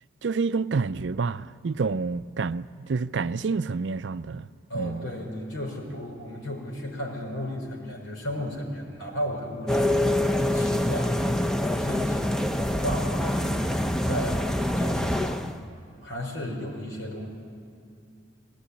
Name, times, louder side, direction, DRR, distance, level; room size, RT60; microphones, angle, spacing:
voice 1, 0.2-4.5 4.7-5.1, right 4 dB, 60° right, 0.4 m, -28 dB
voice 2, 4.7-14.4 14.7-15.5 16.0-17.3, equal, 90° left, 5.3 m, -35 dB
sound 1, 9.7-15.6, left 1 dB, 5° left, 0.6 m, -25 dB
20.5 x 17.5 x 9.8 m
head